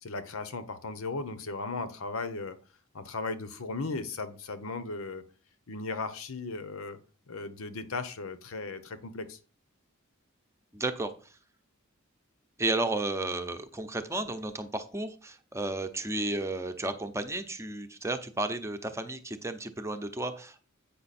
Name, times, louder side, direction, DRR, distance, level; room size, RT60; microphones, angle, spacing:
voice 1, 0.0-2.6 2.9-5.2 5.7-7.0 7.3-9.4, left 3 dB, 80° left, 11 dB, 1.0 m, -36 dB
voice 2, 10.7-11.3 12.6-20.6, right 2 dB, 15° right, 7 dB, 0.7 m, -33 dB
8.6 x 5.7 x 4.3 m, 0.38 s
head